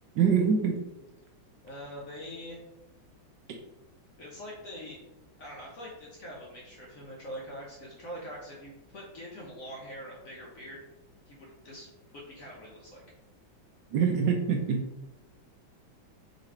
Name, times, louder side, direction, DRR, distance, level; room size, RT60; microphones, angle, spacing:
voice 1, 0.2-0.7 13.9-14.8, right 6 dB, 75° right, 3 dB, 1.1 m, -24 dB
voice 2, 1.6-2.6 4.2-5.0 5.4-10.8 11.3-13.0, equal, 55° left, -3 dB, 0.9 m, -44 dB
3.9 x 3.1 x 4.3 m, 0.95 s
omnidirectional pair, 2.2 m